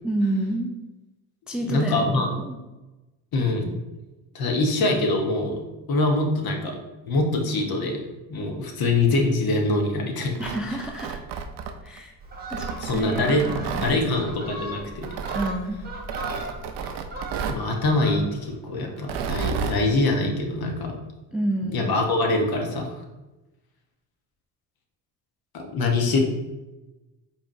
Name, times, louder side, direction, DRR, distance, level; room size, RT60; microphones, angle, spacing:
voice 1, 0.0-0.7 1.5-2.5 10.4-11.2 11.8-12.2 12.5-14.3 15.3-15.8 21.3-21.9, right 1 dB, ahead, 1 dB, 0.4 m, -29 dB
voice 2, 1.6-2.3 3.3-3.7 4.3-5.6 5.9-6.8 7.1-8.0 8.3-10.5 12.8-13.5 13.8-15.1 17.5-20.9 21.7-23.0 25.5-26.2, left 2 dB, 50° left, 3 dB, 1.0 m, -24 dB
Tearing, 10.2-12.0 12.5-14.0 15.0-15.5 16.1-17.7 19.0-19.8, right 6 dB, 60° right, 0.6 m, -31 dB
Fowl, 12.2-18.5 18.9-19.1, right 1 dB, 20° right, 1.2 m, -37 dB
4.8 x 3.5 x 2.6 m, 1.1 s
hypercardioid pair, 60°, 46 cm